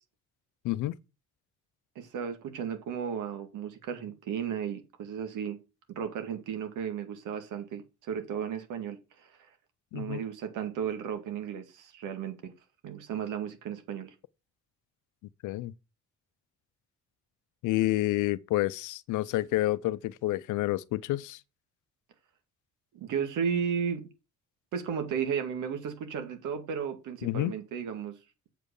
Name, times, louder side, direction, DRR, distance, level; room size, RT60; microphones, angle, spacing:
voice 1, 0.6-1.0 9.9-10.3 15.4-15.7 17.6-21.4 27.2-27.5, left 16 dB, 90° left, 0.6 m, -29 dB
voice 2, 2.0-5.6 5.9-9.3 9.9-12.5 12.8-14.1 22.9-24.1 24.7-28.2, right 7 dB, 85° right, 2.0 m, -34 dB
7.7 x 5.3 x 6.4 m
cardioid pair, 90°, 30 cm